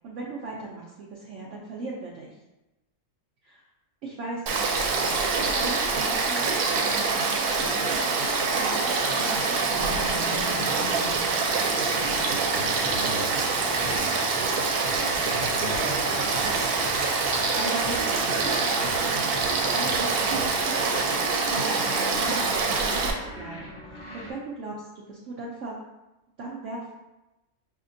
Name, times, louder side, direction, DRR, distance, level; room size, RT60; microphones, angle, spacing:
voice 1, 0.0-2.4 3.4-3.6 4.0-8.2 8.5-11.3 17.2-19.4 19.7-21.9 22.2-25.8 26.4-26.9, right 2 dB, 65° right, -3 dB, 0.8 m, -38 dB
Frog / Stream, 4.5-23.1, right 4 dB, 85° right, 1.1 m, -25 dB
sound 1, 9.3-24.3, left 1 dB, 25° left, 0.8 m, -41 dB
voice 2, 11.9-14.5 14.9-16.6, equal, 35° right, -3 dB, 0.9 m, -40 dB
sound 2, 12.8-20.8, equal, 90° left, 0.4 m, -44 dB
5.0 x 2.8 x 2.6 m, 1.0 s
omnidirectional pair, 1.5 m